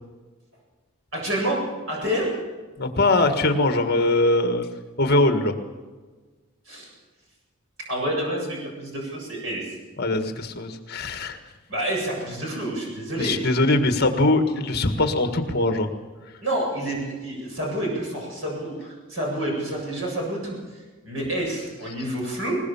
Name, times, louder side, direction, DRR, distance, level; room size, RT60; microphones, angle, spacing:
voice 1, 1.1-2.4 6.7-6.9 7.9-9.7 11.7-13.4 16.4-22.6, right 1 dB, 60° right, -1 dB, 7.8 m, -28 dB
voice 2, 2.8-4.7 5.0-5.5 10.0-11.4 13.2-15.9, left 2 dB, 45° left, 7 dB, 1.8 m, -21 dB
21.5 x 20.5 x 7.2 m, 1.4 s
head